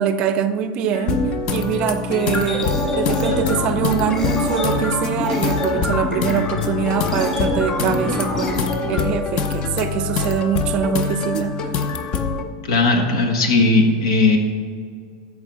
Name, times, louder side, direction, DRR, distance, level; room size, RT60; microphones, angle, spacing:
voice 1, 0.0-11.7, right 8 dB, 35° right, 11 dB, 0.6 m, -23 dB
sound 1, 0.9-12.4, left 5 dB, 35° left, 0.7 m, -25 dB
sound 2, 2.2-9.0, left 1 dB, 20° left, 2.4 m, -25 dB
voice 2, 12.7-14.4, left 3 dB, 75° left, 3 dB, 1.8 m, -17 dB
13.5 x 4.8 x 6.1 m, 2.1 s
supercardioid pair, 155°, 3 cm